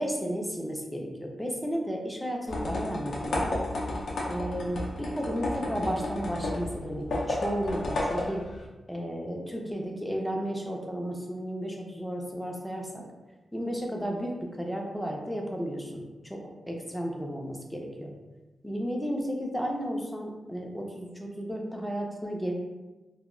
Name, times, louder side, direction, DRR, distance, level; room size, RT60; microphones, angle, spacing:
voice 1, 0.0-3.5 4.3-8.4 8.9-13.0 13.5-16.4 16.7-18.1 18.6-22.5, equal, 5° left, 0 dB, 0.4 m, -33 dB
sound 1, 2.5-8.7, left 1 dB, 75° left, 0.5 m, -32 dB
2.1 x 2.0 x 3.6 m, 1.2 s
wide cardioid pair, 130°, 0 cm